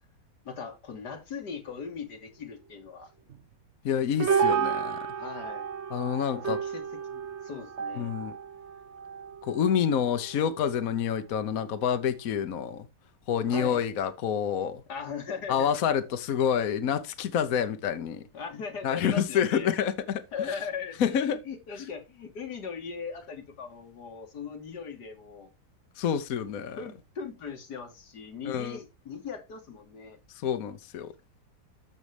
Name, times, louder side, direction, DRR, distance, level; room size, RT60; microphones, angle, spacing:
voice 1, 0.4-3.1 5.2-5.7 6.3-8.1 13.4-13.8 14.9-15.7 18.3-19.7 20.3-25.5 26.8-30.2, left 6 dB, 80° left, 2.2 m, -39 dB
sound 1, 3.3-3.4 4.2-11.1 11.4-11.8 12.3-12.4 13.5-13.6, right 7 dB, 50° right, 1.1 m, -32 dB
voice 2, 3.8-5.0 5.9-6.6 8.0-8.3 9.4-12.9 13.3-14.8 15.5-18.2 18.8-20.5 21.0-21.4 26.0-26.8 28.5-28.8 30.3-31.1, left 8 dB, 65° left, 1.2 m, -28 dB
13.5 x 5.5 x 3.3 m
omnidirectional pair, 1.7 m